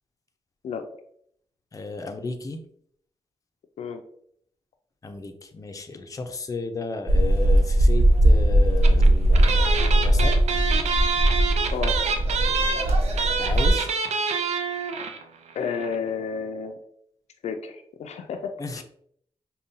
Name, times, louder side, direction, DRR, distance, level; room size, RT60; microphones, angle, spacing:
voice 1, 1.7-2.6 5.0-10.3 13.4-13.9 18.6-18.8, left 3 dB, 30° left, 5 dB, 0.5 m, -33 dB
sound 1, 7.1-13.7, right 1 dB, 70° right, 0.8 m, -19 dB
sound 2, 8.8-9.1 9.3-15.2 15.5-15.6 15.8-15.9, right 5 dB, 90° right, 0.4 m, -26 dB
voice 2, 15.5-16.8 17.4-18.8, left 6 dB, 85° left, 6 dB, 0.4 m, -31 dB
5.3 x 2.3 x 2.6 m, 0.65 s
cardioid pair, 75°, 11 cm